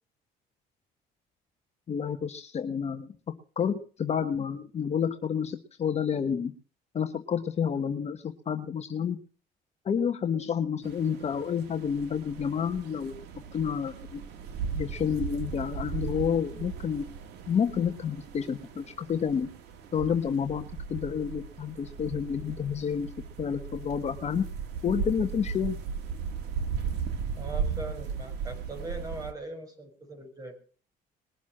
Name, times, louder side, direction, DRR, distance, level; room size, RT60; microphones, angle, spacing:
voice 1, 1.9-3.1 3.6-6.5 6.9-9.2 9.8-13.1 13.5-14.2 14.7-17.0 17.5-19.5 19.9-23.1 23.4-24.5 24.8-25.8, left 7 dB, 40° left, 7 dB, 1.2 m, -29 dB
sound 1, 10.8-29.3, right 6 dB, 85° right, 2.1 m, -37 dB
voice 2, 27.4-30.6, right 2 dB, 20° right, 5 dB, 5.8 m, -40 dB
20.5 x 7.2 x 7.5 m, 0.41 s
cardioid pair, 110°, 17 cm